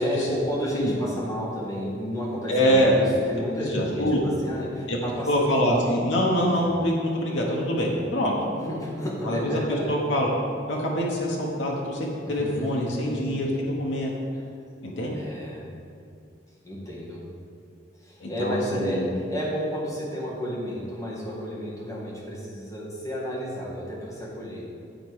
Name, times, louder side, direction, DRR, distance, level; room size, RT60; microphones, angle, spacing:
voice 1, 0.0-5.9 6.5-6.7 8.5-9.9 12.3-13.4 15.1-15.6 16.6-17.2 18.0-24.7, equal, 15° left, -6 dB, 1.7 m, -31 dB
voice 2, 2.5-3.0 3.6-4.2 4.9-5.0 5.3-8.3 9.2-10.3 10.7-14.1 14.8-15.2 18.2-19.1, equal, 70° left, -2 dB, 1.0 m, -25 dB
9.0 x 4.3 x 4.7 m, 2.4 s
head